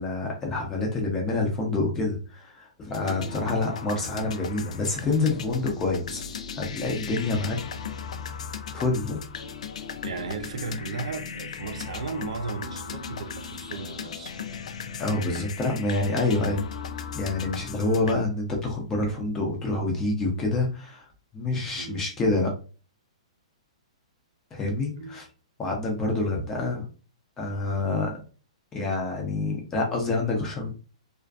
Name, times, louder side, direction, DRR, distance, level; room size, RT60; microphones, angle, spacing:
voice 1, 0.0-6.2 6.6-7.6 8.7-9.2 15.0-16.6 17.1-21.0 21.3-22.5 24.5-25.3 25.6-26.9 27.4-28.2 28.7-30.7, left 2 dB, 10° left, 0.5 m, -27 dB
sound 1, 2.9-18.1, left 6 dB, 70° left, 0.3 m, -37 dB
voice 2, 10.0-14.3 21.8-22.1 25.0-25.2, right 4 dB, 70° right, 0.5 m, -35 dB
2.4 x 2.4 x 2.3 m
hypercardioid pair, 165°, 4 cm